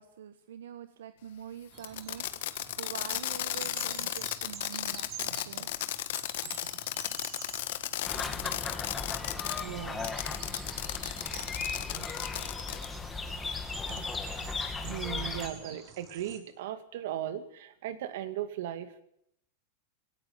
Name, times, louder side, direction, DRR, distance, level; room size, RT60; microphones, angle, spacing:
voice 1, 0.0-5.7, right 9 dB, 90° right, 10 dB, 1.2 m, -45 dB
sound 1, 1.7-16.4, right 7 dB, 40° right, 4.4 m, -48 dB
Fireworks, 1.8-9.6 10.0-12.9, left 14 dB, 70° left, 1.6 m, -35 dB
voice 2, 5.3-5.7 6.4-6.8 8.2-8.6 9.6-10.1 10.5-10.6 11.0-11.1 11.9-12.3 13.9-14.0 14.3-14.5 14.8-19.0, right 11 dB, 70° right, 10 dB, 2.4 m, -39 dB
sound 2, 8.0-15.5, left 4 dB, 10° left, 2.2 m, -37 dB
18.0 x 17.5 x 8.9 m, 0.74 s
supercardioid pair, 140°, 0 cm